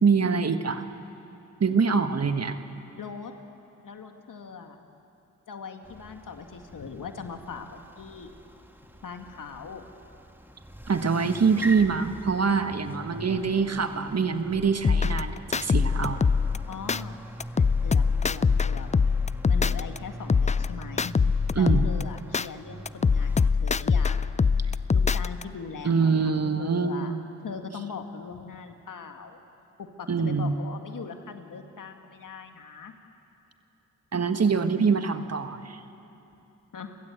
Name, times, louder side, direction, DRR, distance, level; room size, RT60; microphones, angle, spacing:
voice 1, 0.0-0.8 1.6-2.6 10.9-16.2 21.6-21.9 25.8-27.2 30.1-30.6 34.1-35.8, right 5 dB, 50° right, 8 dB, 1.5 m, -24 dB
voice 2, 3.0-3.4 3.8-4.8 5.5-8.3 9.0-9.9 16.7-17.2 17.5-18.9 19.5-21.1 21.6-24.4 24.9-27.1 27.4-29.4 29.8-32.9 36.7-37.0, left 5 dB, 70° left, 5 dB, 2.0 m, -40 dB
sound 1, 5.8-23.5, right 1 dB, 5° right, 1.9 m, -43 dB
sound 2, 14.8-17.0 17.4-20.0 20.3-22.5 22.9-25.4, left 5 dB, 20° left, 0.4 m, -23 dB
29.0 x 16.0 x 8.1 m, 2.9 s
supercardioid pair, 45°, 33 cm